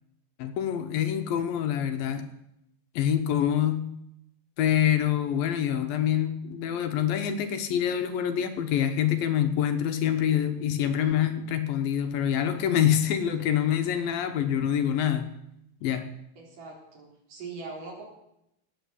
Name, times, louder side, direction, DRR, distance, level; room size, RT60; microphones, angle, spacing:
voice 1, 0.4-2.3 3.0-3.8 4.6-15.3 15.8-16.1, left 10 dB, 75° left, 8 dB, 2.8 m, -26 dB
voice 2, 16.4-18.0, right 4 dB, 60° right, 0 dB, 5.5 m, -41 dB
18.5 x 9.0 x 8.1 m, 0.80 s
omnidirectional pair, 4.3 m